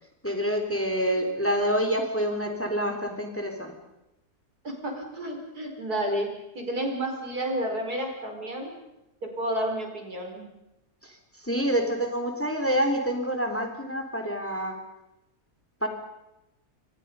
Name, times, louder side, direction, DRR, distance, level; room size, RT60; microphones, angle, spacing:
voice 1, 0.2-3.7 11.0-14.8 15.8-15.9, equal, 10° left, 4 dB, 3.3 m, -27 dB
voice 2, 4.6-6.3 6.5-8.7 9.2-10.4, right 1 dB, 75° right, 2 dB, 5.5 m, -31 dB
27.0 x 26.0 x 5.6 m, 0.94 s
omnidirectional pair, 1.7 m